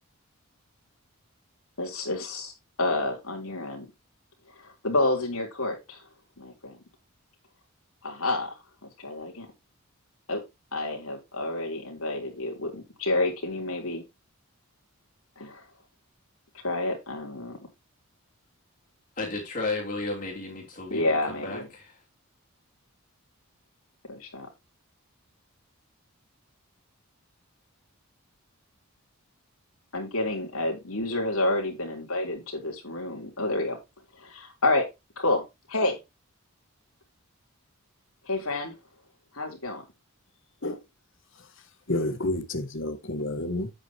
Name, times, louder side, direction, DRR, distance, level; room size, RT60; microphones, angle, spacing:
voice 1, 1.8-2.5 2.8-3.9 4.6-6.0 6.4-6.8 8.0-8.6 9.0-9.5 10.3-10.4 10.7-14.0 15.4-15.6 16.6-17.6 20.9-21.7 24.1-24.5 29.9-33.8 34.2-34.9 35.2-35.4 35.7-36.0 38.3-38.7 39.3-39.8, left 2 dB, 75° left, 3.6 m, -29 dB
voice 2, 19.2-22.0, left 3 dB, 35° left, 3.3 m, -33 dB
voice 3, 41.9-43.7, left 1 dB, 55° left, 1.4 m, -29 dB
8.9 x 8.3 x 2.9 m
head